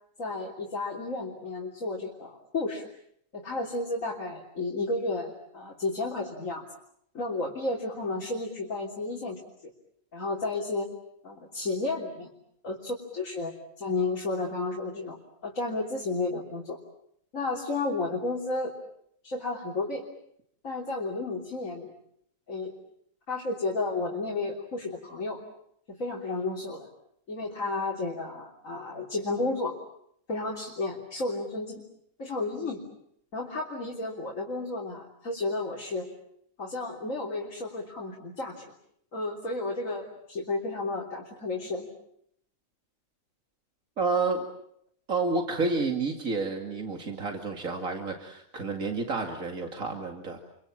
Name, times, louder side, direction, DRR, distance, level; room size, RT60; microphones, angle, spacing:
voice 1, 0.2-2.8 3.3-6.6 7.1-9.4 10.1-10.9 11.2-12.3 12.6-15.2 15.4-16.8 17.3-18.7 19.2-20.0 20.6-21.9 22.5-22.7 23.3-25.4 25.9-26.9 27.3-29.7 30.3-31.8 32.2-32.8 33.3-36.1 36.6-38.7 39.1-41.9, left 3 dB, 75° left, -2 dB, 3.8 m, -32 dB
voice 2, 44.0-44.5 45.1-50.4, right 3 dB, 80° right, 3 dB, 2.8 m, -30 dB
29.5 x 25.0 x 7.4 m, 0.71 s
omnidirectional pair, 1.4 m